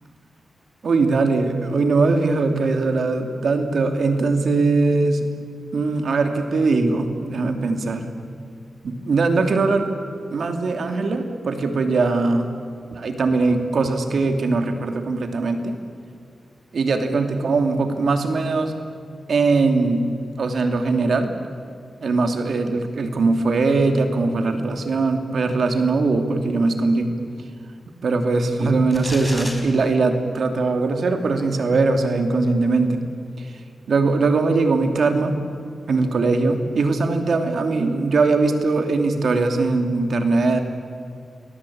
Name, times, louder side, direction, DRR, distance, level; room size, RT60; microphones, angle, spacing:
voice 1, 0.8-5.3 5.7-8.1 8.8-9.9 10.3-12.5 12.9-15.7 16.7-18.7 19.3-20.0 20.4-21.3 22.0-27.1 28.0-33.0 33.4-33.5 33.9-35.3 35.9-40.6, right 3 dB, 70° right, 6 dB, 2.8 m, -20 dB
sound 1, 28.9-29.6, left 1 dB, 15° left, 4.9 m, -32 dB
29.0 x 21.0 x 8.7 m, 2.3 s
cardioid pair, 75°, 0 cm